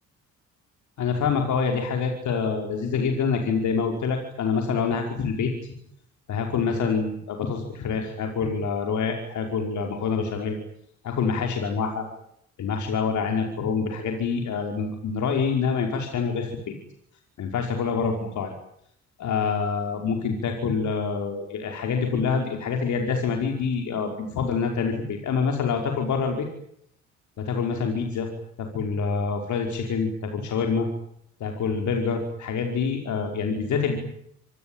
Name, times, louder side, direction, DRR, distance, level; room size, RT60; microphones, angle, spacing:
voice 1, 1.0-5.5 6.3-10.6 11.0-12.0 12.6-16.7 17.4-18.5 19.2-26.5 27.4-28.3 28.6-30.9 31.4-34.0, left 5 dB, 70° left, 3 dB, 5.3 m, -26 dB
27.0 x 20.5 x 9.0 m, 0.73 s
cardioid pair, 90°, 30 cm